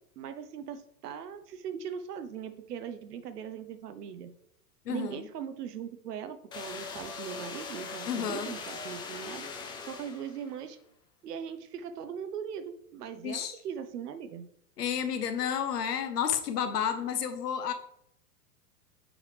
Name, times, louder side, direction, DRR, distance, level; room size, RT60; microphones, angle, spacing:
voice 1, 0.2-4.3 4.9-9.5 9.8-10.8 11.2-14.5, right 8 dB, 75° right, 10 dB, 0.9 m, -40 dB
voice 2, 4.8-5.3 8.1-8.5 13.2-13.6 14.8-17.7, left 8 dB, 75° left, 8 dB, 1.0 m, -31 dB
sound 1, 6.5-10.5, left 4 dB, 10° left, 0.4 m, -41 dB
7.5 x 4.8 x 3.2 m, 0.72 s
hypercardioid pair, 110°, 47 cm